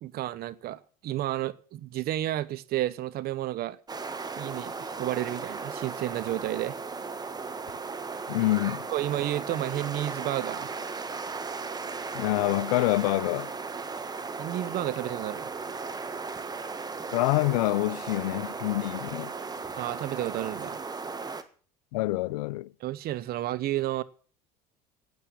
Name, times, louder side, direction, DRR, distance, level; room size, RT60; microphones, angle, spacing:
voice 1, 0.0-3.8 4.3-6.8 8.9-10.8 14.4-15.5 19.8-20.8 22.8-24.0, right 14 dB, 55° right, 1.0 m, -31 dB
sound 1, 3.9-21.4, right 4 dB, 20° right, 1.4 m, -36 dB
voice 2, 8.3-8.9 12.1-13.5 17.1-19.3 21.9-22.7, left 18 dB, 80° left, 0.5 m, -26 dB
10.5 x 8.8 x 9.0 m
hypercardioid pair, 85°, 19 cm